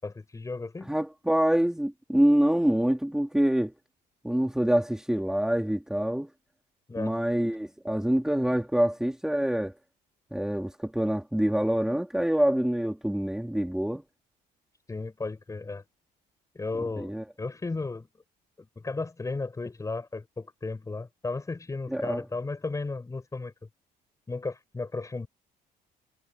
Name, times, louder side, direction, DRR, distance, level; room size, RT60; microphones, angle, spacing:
voice 1, 0.0-0.9 6.9-7.2 14.9-15.8 16.6-18.1 18.6-23.5 24.3-25.3, left 3 dB, 20° left, 5.2 m, -34 dB
voice 2, 0.8-3.7 4.2-6.3 7.0-9.7 10.3-14.0 17.0-17.2 21.9-22.3, right 1 dB, 5° right, 3.6 m, -26 dB
cardioid pair, 110°, 17 cm